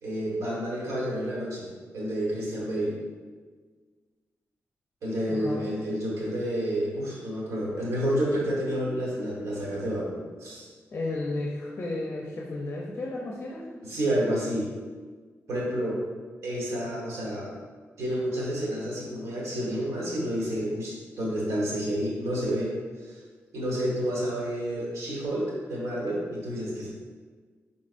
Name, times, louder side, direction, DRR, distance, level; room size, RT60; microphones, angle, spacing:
voice 1, 0.0-1.7 1.9-2.9 5.0-10.7 13.8-14.7 15.5-16.0 16.4-17.5 18.0-22.7 23.0-23.2 23.5-26.9, equal, 85° right, -5 dB, 1.4 m, -29 dB
voice 2, 5.3-5.7 10.9-13.7, left 2 dB, 40° left, -2 dB, 0.6 m, -33 dB
5.2 x 3.7 x 2.6 m, 1.5 s
wide cardioid pair, 115°, 5 cm